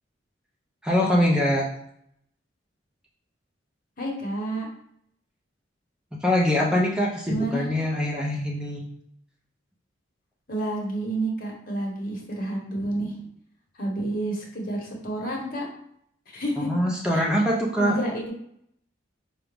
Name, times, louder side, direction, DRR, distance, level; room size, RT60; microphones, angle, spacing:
voice 1, 0.8-1.7 6.2-8.8 16.6-18.0, left 1 dB, 5° right, -3 dB, 0.5 m, -23 dB
voice 2, 4.0-4.7 7.2-7.7 10.5-13.2 13.8-15.6 16.3-16.7 17.1-17.2 17.8-18.3, right 1 dB, 50° left, -1 dB, 1.0 m, -29 dB
5.0 x 2.3 x 3.4 m, 0.70 s
head